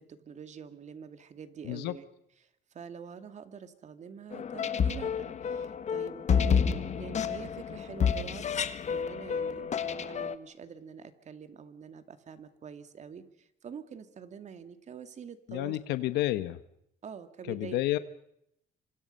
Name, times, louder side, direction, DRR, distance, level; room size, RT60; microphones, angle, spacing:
voice 1, 0.0-2.0 2.4-15.8 17.0-17.8, right 7 dB, 45° right, 9 dB, 2.4 m, -46 dB
sound 1, 4.3-10.4, left 7 dB, 45° left, 1.5 m, -30 dB
voice 2, 15.5-16.6 17.5-18.0, left 15 dB, 90° left, 12 dB, 1.1 m, -30 dB
26.5 x 26.0 x 5.5 m, 0.76 s
cardioid pair, 110°, 17 cm